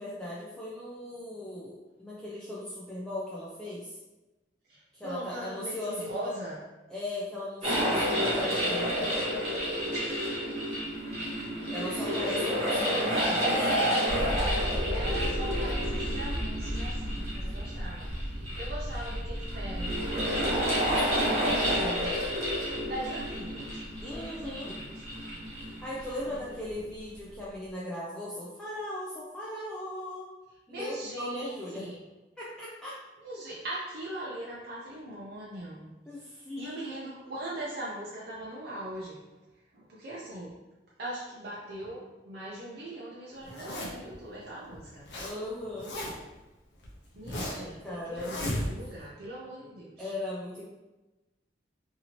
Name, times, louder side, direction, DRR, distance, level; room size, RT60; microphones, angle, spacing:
voice 1, 0.0-4.0 4.9-6.3 6.9-9.3 11.7-13.5 20.7-22.1 24.0-24.8 25.5-30.3 30.7-31.9 32.4-33.0 36.1-36.8 45.2-46.0 47.4-48.4 50.0-50.6, left 1 dB, 5° left, -8 dB, 0.4 m, -38 dB
voice 2, 4.7-6.6 9.9-10.8 11.2-11.5 11.8-13.1 13.4-14.3 14.9-20.1 21.5-22.1 22.9-23.8 24.1-25.1 26.3-26.4 30.7-32.0 33.2-39.3 39.7-40.6 41.0-45.1 47.2-50.1, right 1 dB, 55° right, -5 dB, 0.5 m, -39 dB
sound 1, 7.6-26.2, equal, 30° right, 1.0 m, -30 dB
sound 2, 14.1-27.7, equal, 80° right, 1.0 m, -36 dB
Zipper (clothing), 43.4-44.1 44.7-45.3 45.6-46.3 46.8-47.7 48.2-49.0, left 1 dB, 75° left, 0.7 m, -35 dB
2.8 x 2.7 x 2.8 m, 1.1 s
head